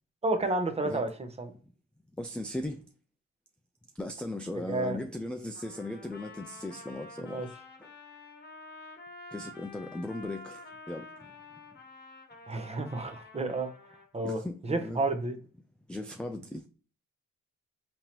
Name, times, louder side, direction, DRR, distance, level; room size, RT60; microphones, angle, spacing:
voice 1, 0.2-1.5 4.5-5.0 7.2-7.5 12.5-13.7 14.1-14.4 14.6-15.4, right 2 dB, 20° right, 0.7 m, -31 dB
voice 2, 2.2-2.8 3.9-7.5 7.8-7.9 9.3-11.3 14.2-15.0 15.9-16.7, left 1 dB, 5° left, 0.3 m, -38 dB
Trumpet, 5.5-14.1, left 2 dB, 35° left, 1.1 m, -49 dB
3.7 x 3.0 x 2.8 m
cardioid pair, 90°, 30 cm